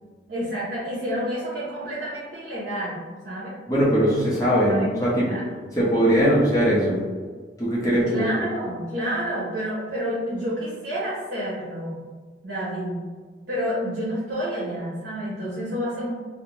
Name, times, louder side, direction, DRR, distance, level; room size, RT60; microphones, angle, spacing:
voice 1, 0.3-3.5 4.7-4.9 5.2-5.4 8.1-12.0 12.4-13.0 13.5-16.2, equal, 70° right, -8 dB, 0.8 m, -29 dB
voice 2, 3.7-5.3 5.8-7.0 7.6-8.2, equal, 20° left, -7 dB, 0.6 m, -20 dB
2.5 x 2.0 x 3.0 m, 1.5 s
head